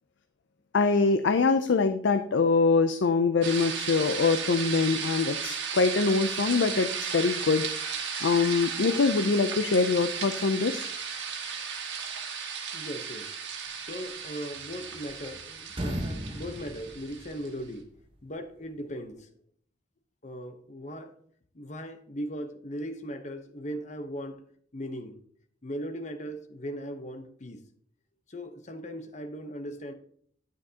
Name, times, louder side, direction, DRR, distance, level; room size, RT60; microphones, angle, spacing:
voice 1, 0.7-7.7 8.2-10.9, left 4 dB, 80° left, 0.5 m, -24 dB
sound 1, 3.4-17.5, right 6 dB, 75° right, 1.7 m, -35 dB
voice 2, 12.7-13.3 13.8-17.9 18.2-19.3 20.2-21.1 21.5-24.4 24.7-25.2 25.6-27.6 28.3-29.9, equal, 40° left, 0.9 m, -38 dB
sound 2, 14.5-15.4 15.7-17.8, equal, 30° right, 1.1 m, -36 dB
9.7 x 8.5 x 2.8 m
head